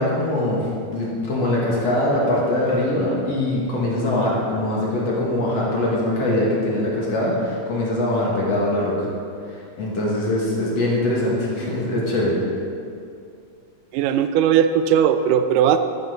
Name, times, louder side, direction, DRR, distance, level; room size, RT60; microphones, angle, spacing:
voice 1, 0.0-9.1 9.5-12.4, left 1 dB, 50° left, -5 dB, 3.1 m, -22 dB
voice 2, 13.9-15.8, right 9 dB, 85° right, 9 dB, 2.1 m, -18 dB
14.0 x 9.3 x 4.0 m, 2.4 s
omnidirectional pair, 3.8 m